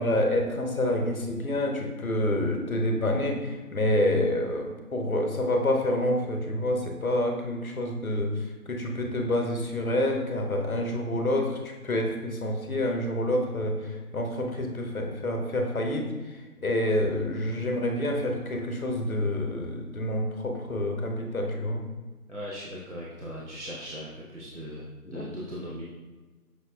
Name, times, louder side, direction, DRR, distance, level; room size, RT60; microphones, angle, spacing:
voice 1, 0.0-21.8 25.1-25.3, left 1 dB, 65° left, 3 dB, 0.8 m, -28 dB
voice 2, 22.3-25.8, equal, 50° right, -6 dB, 0.5 m, -39 dB
5.6 x 3.0 x 2.4 m, 1.3 s
figure-of-eight pair, 180°, 46 cm